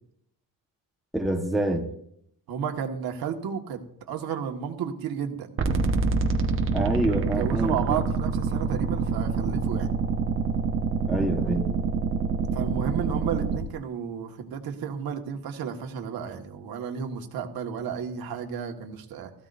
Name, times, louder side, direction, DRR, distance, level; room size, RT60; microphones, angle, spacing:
voice 1, 1.1-1.8 6.7-8.0 11.1-11.7, right 1 dB, ahead, 0 dB, 1.3 m, -26 dB
voice 2, 2.5-5.5 7.1-9.9 12.5-19.3, right 7 dB, 75° right, 4 dB, 1.8 m, -32 dB
sound 1, 5.6-13.6, right 4 dB, 35° right, 1.3 m, -26 dB
19.0 x 15.0 x 2.7 m, 0.71 s
cardioid pair, 170°, 36 cm